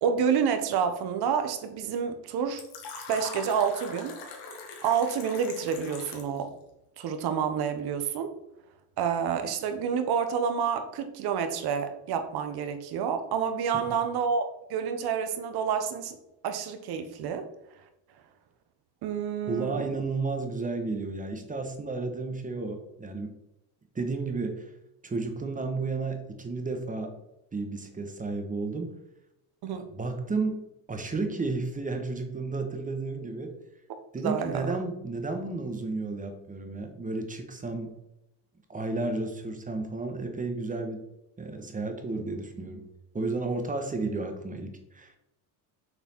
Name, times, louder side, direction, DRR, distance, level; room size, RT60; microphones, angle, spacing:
voice 1, 0.0-2.6 3.1-4.2 4.8-6.5 7.0-8.3 9.0-16.1 16.4-17.5 19.0-19.8 29.6-29.8 34.2-34.7, right 7 dB, 55° right, 8 dB, 1.1 m, -28 dB
Fill (with liquid), 2.6-6.4, left 4 dB, 60° left, 1.8 m, -42 dB
voice 2, 19.5-23.3 23.9-24.7 25.0-27.1 27.5-28.9 29.7-30.6 30.9-33.5 34.1-37.9 38.7-41.0 41.4-42.9 43.1-45.1, right 3 dB, 15° right, 5 dB, 1.2 m, -32 dB
6.8 x 4.2 x 4.3 m, 0.88 s
supercardioid pair, 105°, 45 cm